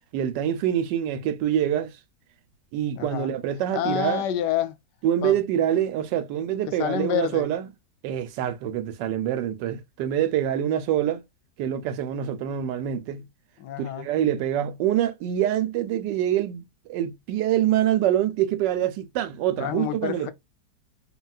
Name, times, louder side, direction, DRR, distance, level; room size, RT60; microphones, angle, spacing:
voice 1, 0.1-1.9 2.7-4.2 5.0-7.7 8.0-11.2 11.6-13.2 13.8-20.3, right 11 dB, 90° right, 1.2 m, -25 dB
voice 2, 2.9-3.3 3.7-4.8 5.2-5.4 6.7-7.5 13.6-14.1 19.6-20.3, left 11 dB, 90° left, 1.3 m, -28 dB
2.9 x 2.8 x 2.3 m
omnidirectional pair, 1.8 m